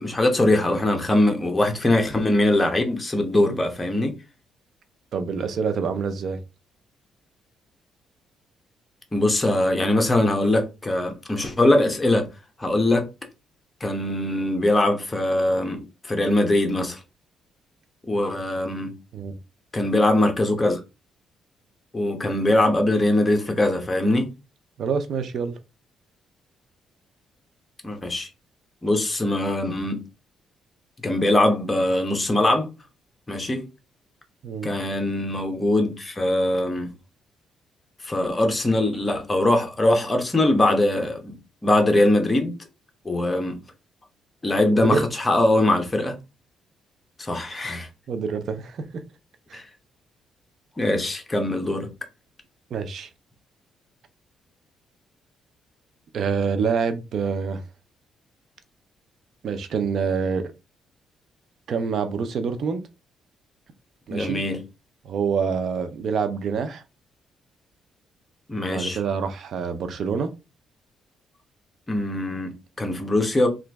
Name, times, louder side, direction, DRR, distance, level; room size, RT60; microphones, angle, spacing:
voice 1, 0.0-4.1 9.1-12.3 12.6-13.1 13.8-17.0 18.1-18.9 19.7-20.8 21.9-24.3 27.8-28.3 28.8-30.0 31.0-32.7 33.3-33.7 34.6-36.9 38.0-41.4 41.6-42.6 43.0-43.6 44.4-46.1 47.2-47.9 49.5-49.7 50.8-51.9 64.1-64.6 68.5-69.0 71.9-73.5, left 1 dB, 20° left, 1.0 m, -22 dB
voice 2, 5.1-6.4 19.1-19.4 24.8-25.5 34.4-34.7 44.8-45.0 48.1-48.8 49.5-49.6 52.7-53.1 56.1-57.6 59.4-60.4 61.7-62.8 64.1-64.4 65.0-66.8 68.7-70.3, right 5 dB, 65° right, 0.6 m, -26 dB
2.9 x 2.5 x 3.4 m
cardioid pair, 90°, 0 cm